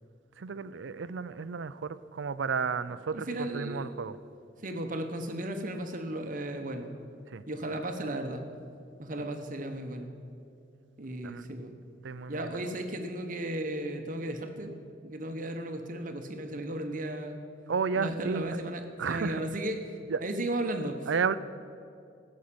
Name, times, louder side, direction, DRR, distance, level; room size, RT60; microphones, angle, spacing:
voice 1, 0.4-4.2 7.3-7.4 7.7-7.8 11.2-11.5 12.0-12.5 17.7-18.6 19.0-19.4 20.1-20.2 21.1-21.3, right 5 dB, 80° right, 14 dB, 0.5 m, -32 dB
voice 2, 3.1-3.8 4.6-7.0 7.5-8.4 9.0-10.1 11.0-11.8 12.3-14.7 15.0-17.4 18.0-19.8 20.2-21.0, right 1 dB, 45° right, 5 dB, 1.2 m, -35 dB
15.5 x 6.4 x 8.7 m, 2.4 s
head